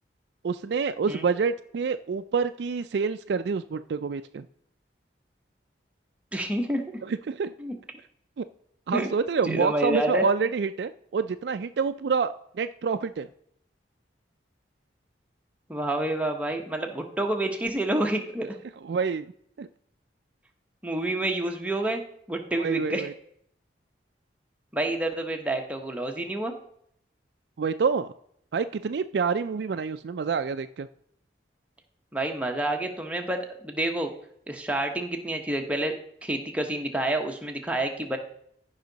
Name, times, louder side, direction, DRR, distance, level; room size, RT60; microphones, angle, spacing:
voice 1, 0.4-4.5 7.0-7.5 8.4-8.5 8.9-13.3 18.8-19.3 19.6-19.7 22.5-23.1 27.6-28.1 28.5-30.9, right 5 dB, 65° right, 9 dB, 0.4 m, -27 dB
voice 2, 6.3-6.8 7.6-7.8 8.9-9.1 9.4-10.3 15.7-18.6 20.8-22.0 22.3-23.1 24.7-26.5 32.1-34.1 34.5-35.9 36.2-38.2, right 1 dB, 5° right, 3 dB, 1.0 m, -28 dB
14.5 x 5.5 x 4.0 m, 0.69 s
head